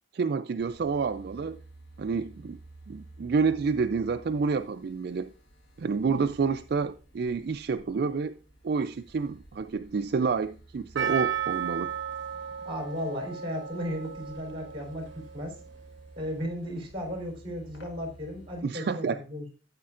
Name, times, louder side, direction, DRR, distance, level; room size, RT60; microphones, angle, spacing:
voice 1, 0.1-1.6 2.0-2.6 2.9-5.3 5.8-8.4 8.6-11.9 18.6-19.2, right 5 dB, 55° right, 0.3 m, -29 dB
sound 1, 0.6-18.6, right 2 dB, 80° left, 1.3 m, -53 dB
Percussion, 11.0-15.3 15.6-15.7, right 9 dB, 75° right, 0.7 m, -34 dB
voice 2, 12.6-15.6 16.1-19.5, equal, 30° right, 3.5 m, -35 dB
13.0 x 8.5 x 2.5 m
head